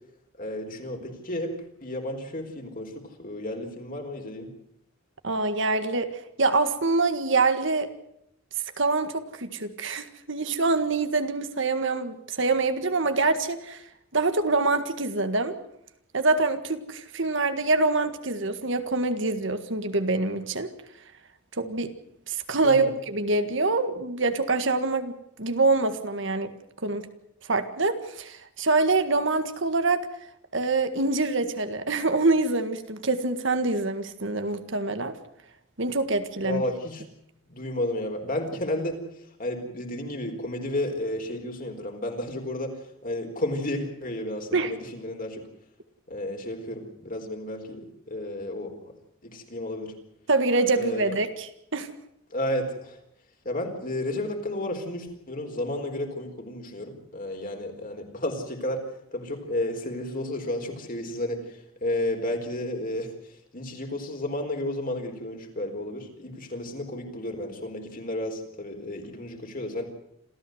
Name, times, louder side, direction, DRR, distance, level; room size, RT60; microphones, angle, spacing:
voice 1, 0.4-1.5 1.8-4.5 22.6-22.9 36.4-37.0 37.5-39.1 39.4-42.7 43.0-45.4 46.1-47.8 48.1-48.7 49.2-49.9 50.8-51.2 52.3-53.0 53.4-58.8 59.1-63.1 63.5-69.8, left 1 dB, 40° left, 3 dB, 4.3 m, -32 dB
voice 2, 5.2-6.1 6.4-7.9 8.8-13.8 14.1-15.6 16.1-20.7 21.6-21.9 22.3-25.1 25.4-26.5 26.8-27.1 27.5-30.1 30.5-35.1 35.8-36.6 44.5-44.8 50.3-51.9, right 3 dB, 60° right, 9 dB, 1.8 m, -25 dB
27.5 x 14.5 x 8.0 m, 0.75 s
head